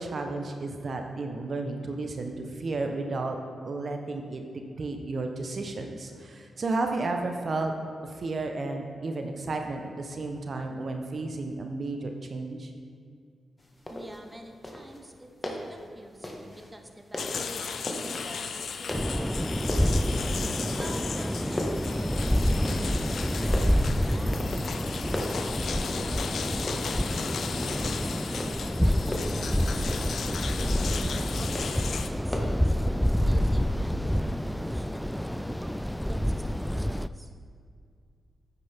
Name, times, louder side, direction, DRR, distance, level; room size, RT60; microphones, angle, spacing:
voice 1, 0.0-3.4 3.6-4.4 4.8-7.7 8.0-12.7, right 3 dB, 55° right, 4 dB, 0.9 m, -32 dB
sound 1, 13.6-32.7, left 1 dB, 25° left, 1.6 m, -39 dB
voice 2, 13.9-15.3 15.7-20.2 20.8-24.3 24.9-25.0 25.5-28.3 28.8-32.6 33.2-35.7 36.1-37.3, right 1 dB, 15° right, 5 dB, 1.0 m, -48 dB
sound 2, 17.2-32.1, left 6 dB, 70° left, 0.5 m, -36 dB
sound 3, 18.9-37.1, equal, 5° left, 0.3 m, -28 dB
9.3 x 8.4 x 3.5 m, 2.2 s
supercardioid pair, 50°, 0 cm